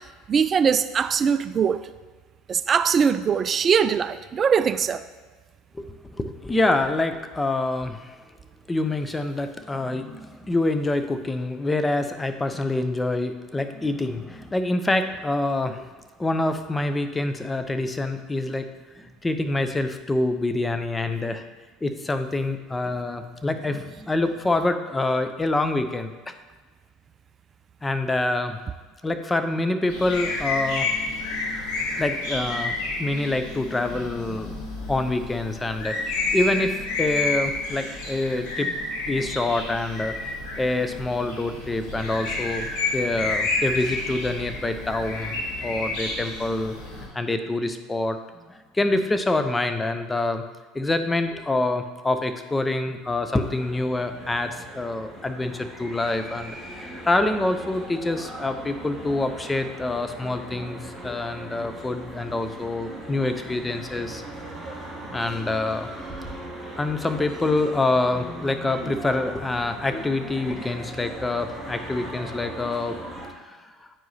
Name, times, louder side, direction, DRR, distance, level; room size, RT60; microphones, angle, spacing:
voice 1, 0.3-1.9 2.5-5.0, right 7 dB, 35° right, 13 dB, 0.3 m, -21 dB
voice 2, 5.7-8.1 8.7-15.9 16.2-18.7 18.9-21.4 21.8-26.3 27.8-28.6 29.0-30.9 32.0-46.8 47.1-48.2 48.5-50.4 50.7-64.2 65.1-65.9 66.8-73.0 73.4-73.7, left 2 dB, 15° left, 9 dB, 0.6 m, -26 dB
sound 1, 29.9-47.1, left 3 dB, 65° left, 1.6 m, -30 dB
sound 2, 53.4-73.3, right 1 dB, ahead, 1.9 m, -39 dB
8.8 x 4.7 x 2.7 m, 1.4 s
hypercardioid pair, 75°, 0 cm